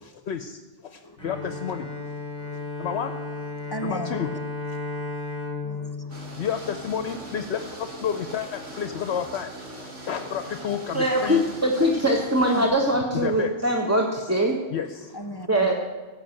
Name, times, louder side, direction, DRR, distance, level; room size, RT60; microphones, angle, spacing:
voice 1, 0.0-1.9 2.8-3.1 3.8-4.3 6.4-9.5 9.8-11.4 13.1-13.5 14.7-15.1, left 8 dB, 65° left, 9 dB, 0.9 m, -30 dB
Bowed string instrument, 1.2-7.4, left 3 dB, 5° left, 2.9 m, -34 dB
voice 2, 3.6-4.2 4.9-5.0 5.6-6.5 15.1-15.5, right 1 dB, 25° left, 6 dB, 0.6 m, -37 dB
sound 1, 6.1-12.7, right 1 dB, 85° right, 2.7 m, -40 dB
voice 3, 10.9-14.6 15.5-15.7, equal, 15° right, 1 dB, 1.0 m, -22 dB
15.5 x 5.7 x 9.0 m, 1.3 s
omnidirectional pair, 1.2 m